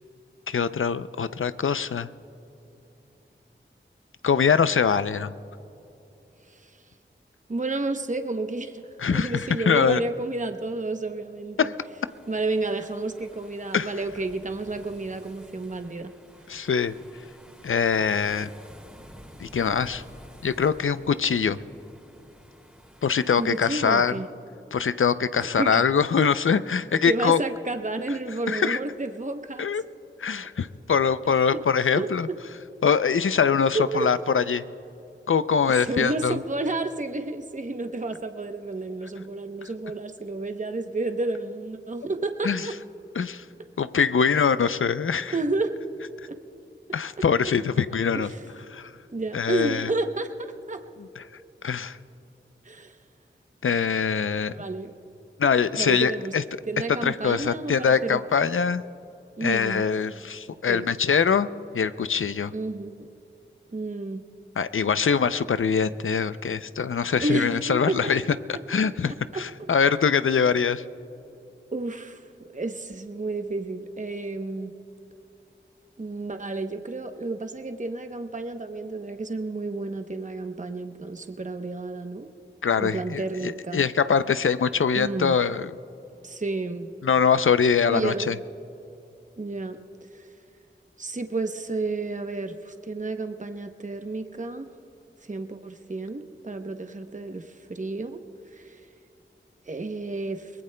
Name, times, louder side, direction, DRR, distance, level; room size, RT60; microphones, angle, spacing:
voice 1, 0.5-2.1 4.2-5.3 9.0-10.0 11.6-11.7 13.7-13.9 16.5-16.9 17.6-18.5 19.4-20.0 20.4-21.6 23.0-24.1 24.7-27.4 28.5-28.8 29.6-29.8 30.2-32.3 32.8-34.6 35.3-36.4 42.4-42.6 43.2-43.4 43.8-45.3 46.9-48.3 48.7-48.9 49.3-49.9 51.2-51.3 51.6-52.0 53.6-54.5 55.4-56.4 57.0-58.8 59.4-61.5 61.7-62.5 64.6-68.2 68.7-70.8 82.6-85.7 87.0-88.3, left 6 dB, 85° left, 13 dB, 0.5 m, -23 dB
voice 2, 7.5-8.8 9.1-11.7 12.3-16.1 23.4-24.3 25.4-25.8 27.0-29.6 31.4-31.6 32.0-32.1 33.7-34.1 35.8-42.7 45.3-45.7 46.3-46.4 47.2-47.3 48.1-48.4 49.1-50.8 52.6-53.0 54.5-54.9 55.8-56.3 56.7-58.2 59.4-59.8 60.7-60.9 62.5-63.1 63.7-64.2 67.2-68.2 68.8-69.7 71.7-72.3 72.5-74.7 76.0-82.3 82.8-83.9 85.0-85.4 86.2-86.9 87.9-88.4 89.4-89.8 90.1-90.3 91.0-94.7 95.3-98.2 98.5-98.8 99.7-100.5, right 2 dB, 40° right, 6 dB, 0.8 m, -31 dB
sound 1, 12.1-23.7, equal, 5° right, 2.5 m, -50 dB
23.5 x 20.5 x 2.2 m, 2.9 s
wide cardioid pair, 50°, 20 cm